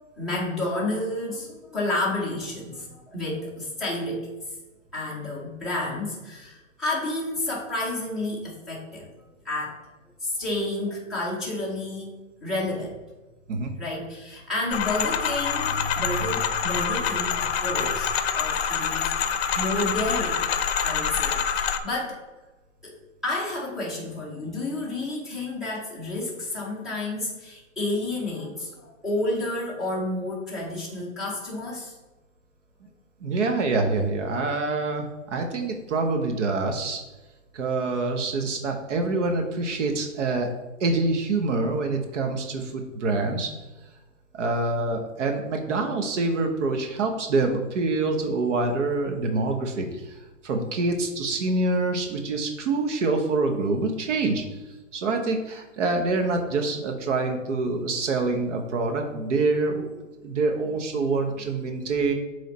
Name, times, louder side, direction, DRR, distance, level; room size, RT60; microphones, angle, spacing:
voice 1, 0.2-4.3 4.9-9.1 9.4-9.8 10.2-12.1 12.4-13.0 13.8-20.5 20.8-22.2 22.8-23.0 23.2-32.0, left 2 dB, ahead, -7 dB, 0.5 m, -30 dB
sound 1, 14.7-21.8, left 7 dB, 50° left, 0.6 m, -26 dB
voice 2, 33.2-37.0 37.5-40.5 40.8-43.5 44.3-54.6 54.9-59.9 60.2-62.1, right 3 dB, 60° right, 4 dB, 0.9 m, -26 dB
7.8 x 3.3 x 4.1 m, 1.2 s
hypercardioid pair, 155°, 40 cm